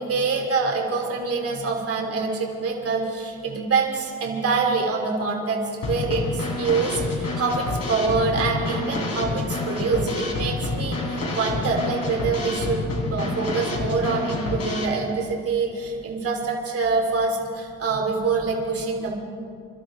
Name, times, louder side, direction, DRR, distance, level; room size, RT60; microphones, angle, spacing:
voice 1, 0.0-12.8 13.1-19.1, right 4 dB, 50° right, 0 dB, 2.8 m, -25 dB
Drum kit / Snare drum, 5.8-14.9, left 2 dB, 55° left, 3.5 m, -28 dB
27.0 x 12.5 x 3.7 m, 2.4 s
cardioid pair, 90°, 30 cm